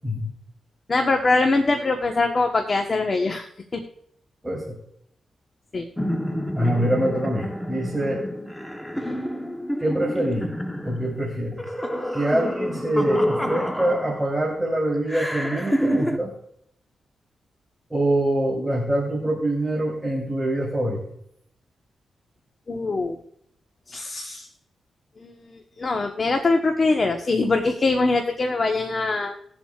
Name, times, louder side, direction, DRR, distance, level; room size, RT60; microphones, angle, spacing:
voice 1, 0.9-3.5 3.7-3.8 5.7-5.9 22.7-23.2 23.9-24.5 25.2-29.4, left 3 dB, 40° left, 3 dB, 1.2 m, -23 dB
voice 2, 4.4-4.8 6.6-8.2 9.8-10.5 10.8-11.6 12.1-16.3 17.9-21.0, right 1 dB, 5° right, -4 dB, 3.4 m, -24 dB
sound 1, 6.0-14.5 15.1-16.2, equal, 10° left, 1.0 m, -28 dB
20.5 x 7.4 x 2.4 m, 0.72 s
cardioid pair, 75°, 0 cm